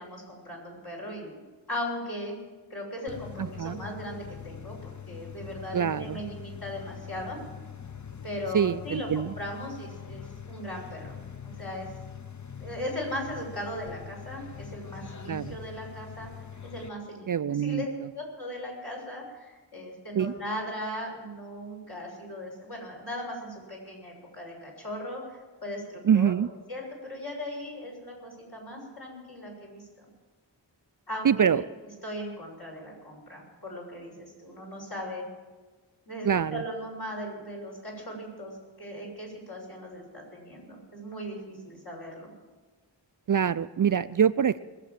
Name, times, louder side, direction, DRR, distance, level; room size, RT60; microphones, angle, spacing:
voice 1, 0.0-1.4 1.7-2.4 2.7-4.7 5.1-7.4 8.2-11.2 11.4-11.9 12.6-16.3 16.6-26.3 26.7-30.0 31.1-31.6 32.0-35.2 36.1-42.3, equal, 60° left, -3 dB, 6.8 m, -38 dB
sound 1, 3.1-16.9, left 8 dB, 40° left, 0.8 m, -43 dB
voice 2, 3.4-3.7 5.7-6.2 8.5-9.3 15.3-15.6 17.3-17.8 20.2-20.3 26.0-26.5 31.2-31.6 36.2-36.6 43.3-44.6, right 8 dB, 50° right, 14 dB, 0.4 m, -25 dB
21.0 x 7.7 x 7.6 m, 1.3 s
wide cardioid pair, 55°, 43 cm